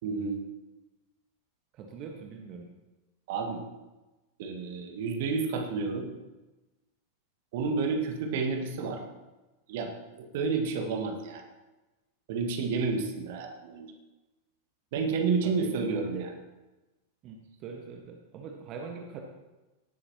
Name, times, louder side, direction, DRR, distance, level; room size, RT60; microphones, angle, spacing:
voice 1, 0.0-0.4 3.3-3.6 4.4-6.1 7.5-9.0 9.7-11.4 12.3-13.9 14.9-16.3, right 4 dB, 50° right, 4 dB, 1.7 m, -30 dB
voice 2, 1.7-2.7 15.4-16.3 17.2-19.2, right 5 dB, 35° right, 2 dB, 1.5 m, -42 dB
18.0 x 11.5 x 3.0 m, 1.1 s
figure-of-eight pair, 90°, 0 cm